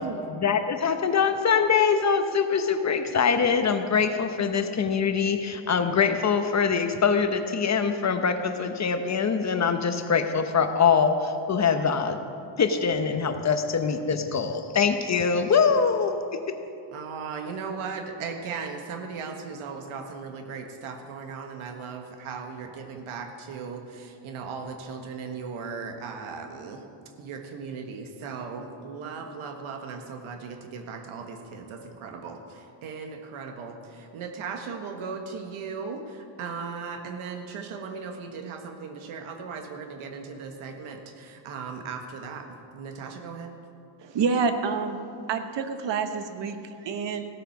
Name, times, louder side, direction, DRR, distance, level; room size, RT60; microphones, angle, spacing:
voice 1, 0.4-12.2 12.6-16.4, left 6 dB, 35° left, 7 dB, 0.9 m, -23 dB
voice 2, 16.9-26.8 27.2-43.5, right 5 dB, 90° right, 5 dB, 1.5 m, -37 dB
voice 3, 44.0-45.0 45.3-47.3, right 5 dB, 60° right, 8 dB, 1.1 m, -28 dB
16.0 x 8.8 x 5.9 m, 2.6 s
cardioid pair, 125°, 47 cm